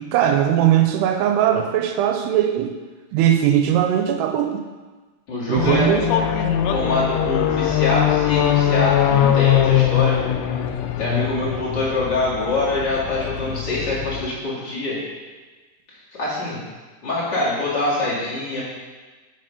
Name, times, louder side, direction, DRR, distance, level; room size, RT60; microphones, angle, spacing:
voice 1, 0.0-2.8 3.1-4.6 5.5-6.1, right 10 dB, 85° right, 5 dB, 2.6 m, -19 dB
voice 2, 5.3-5.9 6.7-10.2 11.0-15.0 16.2-16.6 17.0-18.6, left 2 dB, 40° left, -8 dB, 1.8 m, -24 dB
sound 1, 5.6-14.3, left 10 dB, 85° left, 2.2 m, -21 dB
7.7 x 5.6 x 5.2 m, 1.3 s
omnidirectional pair, 4.7 m